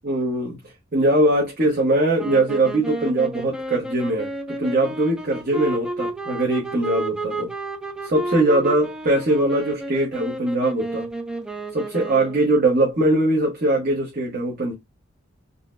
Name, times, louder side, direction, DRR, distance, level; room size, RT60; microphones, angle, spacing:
voice 1, 0.0-0.6 0.9-7.5 8.0-11.1 11.7-14.7, right 1 dB, 50° right, 0.9 m, -21 dB
sound 1, 2.2-12.6, right 2 dB, 5° right, 0.4 m, -31 dB
3.9 x 2.1 x 2.5 m
head